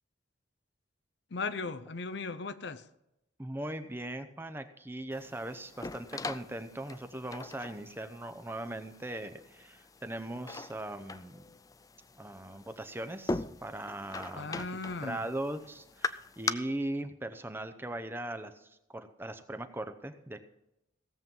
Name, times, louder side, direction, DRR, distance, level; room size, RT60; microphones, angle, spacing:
voice 1, 1.3-2.8 14.4-15.2, left 4 dB, 60° left, 0.7 m, -37 dB
voice 2, 3.4-11.4 12.2-14.7 15.0-20.4, right 1 dB, 10° right, 0.7 m, -39 dB
sound 1, 5.1-16.5, left 3 dB, 20° left, 0.3 m, -41 dB
17.0 x 7.6 x 5.4 m
head